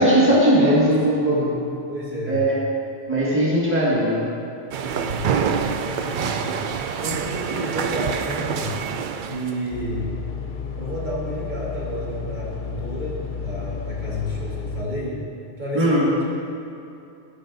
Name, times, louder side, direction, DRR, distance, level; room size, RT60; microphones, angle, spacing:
voice 1, 0.0-1.5 2.3-2.6 3.1-4.3 15.7-16.1, right 1 dB, 10° right, -7 dB, 1.8 m, -18 dB
voice 2, 1.2-2.4 4.9-6.4 7.0-8.8 9.2-10.1 10.8-15.2 15.6-16.2, equal, 40° right, -7 dB, 1.9 m, -31 dB
sound 1, 4.7-9.6, right 7 dB, 60° right, 0.5 m, -26 dB
sound 2, 9.7-14.8, left 6 dB, 50° left, 0.8 m, -32 dB
15.0 x 5.7 x 3.9 m, 2.7 s
omnidirectional pair, 1.2 m